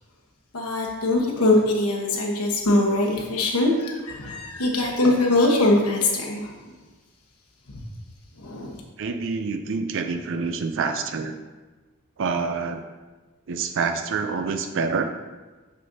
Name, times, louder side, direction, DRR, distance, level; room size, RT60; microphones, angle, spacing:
voice 1, 0.5-6.5 8.4-8.8, left 2 dB, 85° left, 0 dB, 1.2 m, -22 dB
voice 2, 9.0-11.3 12.2-12.8 13.5-15.0, right 4 dB, 60° right, 7 dB, 0.4 m, -27 dB
6.8 x 6.3 x 2.7 m, 1.2 s
head